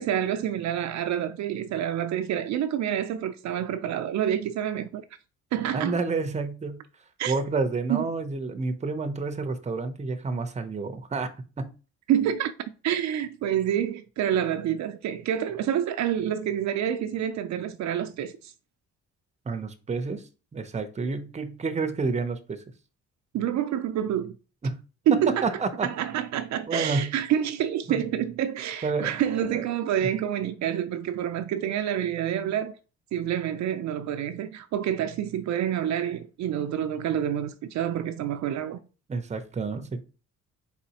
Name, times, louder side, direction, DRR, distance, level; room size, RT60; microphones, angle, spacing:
voice 1, 0.0-5.0 5.5-6.0 7.2-7.4 7.9-8.0 12.1-12.5 12.8-18.5 23.3-24.3 25.1-32.8 33.1-38.8, right 10 dB, 65° right, 0.5 m, -28 dB
voice 2, 5.7-6.8 7.3-11.3 11.6-11.7 19.5-20.2 20.5-22.6 24.6-24.8 25.3-25.9 26.7-27.1 27.9-28.0 28.8-29.1 29.5-29.6 30.0-30.1 39.1-40.0, right 4 dB, 25° right, 0.6 m, -29 dB
4.2 x 4.1 x 2.8 m
cardioid pair, 90°, 30 cm